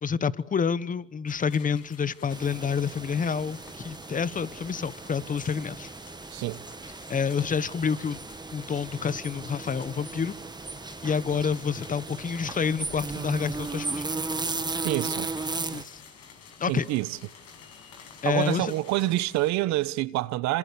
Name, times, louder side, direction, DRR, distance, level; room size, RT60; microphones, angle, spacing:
voice 1, 0.0-5.9 7.1-8.2 8.5-10.4 11.0-14.1 15.7-16.0 16.6-16.8 18.2-18.7, left 6 dB, 30° left, 1.2 m, -28 dB
sound 1, 1.3-19.5, left 6 dB, 60° left, 6.6 m, -51 dB
sound 2, 2.3-15.8, right 3 dB, 15° right, 1.7 m, -36 dB
voice 2, 6.3-6.6 14.8-15.3 16.7-17.2 18.2-20.6, right 17 dB, 70° right, 1.1 m, -27 dB
27.0 x 26.5 x 7.0 m
supercardioid pair, 90°, 29 cm